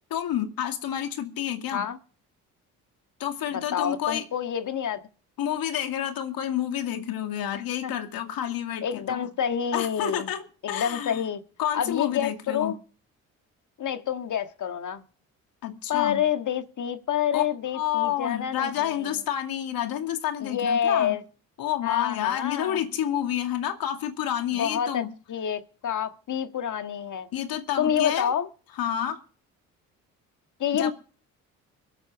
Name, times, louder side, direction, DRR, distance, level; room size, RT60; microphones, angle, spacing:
voice 1, 0.1-1.9 3.2-4.2 5.4-9.3 9.7-11.2 11.6-12.8 15.6-16.2 17.3-17.4 17.7-21.2 21.6-25.1 27.3-28.3 28.8-29.2 30.7-30.9, left 10 dB, 65° left, 2.4 m, -29 dB
voice 2, 3.5-5.0 7.8-7.9 8.8-10.3 10.6-11.4 11.7-12.8 13.8-15.0 15.9-19.2 20.4-21.2 21.8-22.8 24.5-27.3 27.8-28.5 30.6-30.9, left 9 dB, 50° left, 1.7 m, -28 dB
23.0 x 8.3 x 4.7 m
supercardioid pair, 60°, 38 cm